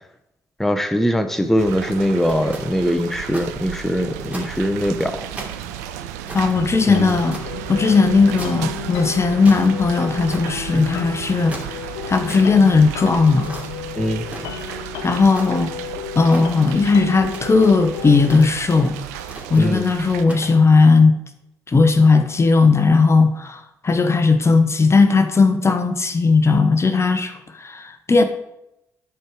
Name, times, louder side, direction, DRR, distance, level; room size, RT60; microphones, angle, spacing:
voice 1, 0.6-5.3 6.9-7.2 13.9-14.2 19.6-19.9, equal, 5° left, 8 dB, 0.9 m, -21 dB
sound 1, 1.4-1.7 2.3-3.5 3.8-3.9 4.3-5.0 5.4-7.5 8.4-8.8 9.1-9.7 10.3-10.6 11.3-12.5 13.2-13.7 14.3-14.9 15.3-15.9 16.3-16.8 17.3-17.7 18.3-18.8 19.3-19.7 20.2-20.6, right 1 dB, 15° right, 2.9 m, -37 dB
sound 2, 1.6-20.2, right 10 dB, 85° right, 0.5 m, -34 dB
voice 2, 6.3-7.4 7.7-11.6 12.1-13.5 15.0-15.7 16.2-18.9 19.5-21.2 21.7-27.3 27.6-28.2, left 4 dB, 35° left, 8 dB, 1.0 m, -16 dB
sound 3, 6.5-18.3, left 10 dB, 80° left, 0.5 m, -34 dB
10.5 x 4.7 x 4.8 m, 0.85 s
hypercardioid pair, 45°, 8 cm